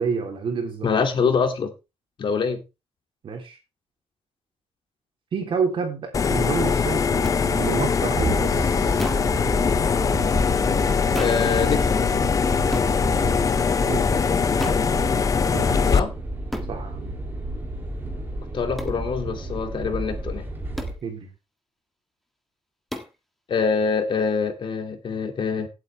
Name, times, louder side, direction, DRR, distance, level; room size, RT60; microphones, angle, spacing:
voice 1, 0.0-0.9 3.2-3.6 5.3-9.1 13.9-14.2 15.5-16.0 16.7-17.2 21.0-21.3, right 5 dB, 55° right, 3.3 m, -29 dB
voice 2, 0.8-1.7 2.2-2.6 11.2-12.1 15.9-16.1 18.5-20.5 23.5-25.7, left 5 dB, 50° left, 2.3 m, -24 dB
sound 1, 6.1-16.0, left 5 dB, 30° left, 0.6 m, -22 dB
hits of head on solid surface, 7.2-7.4 9.0-9.3 11.1-11.5 12.7-12.9 14.6-14.9 16.5-16.7 18.8-19.0 20.8-21.0 22.9-23.2, equal, ahead, 1.6 m, -32 dB
sound 2, 8.1-20.9, right 1 dB, 20° right, 3.3 m, -32 dB
17.0 x 8.2 x 3.4 m
wide cardioid pair, 165°, 11 cm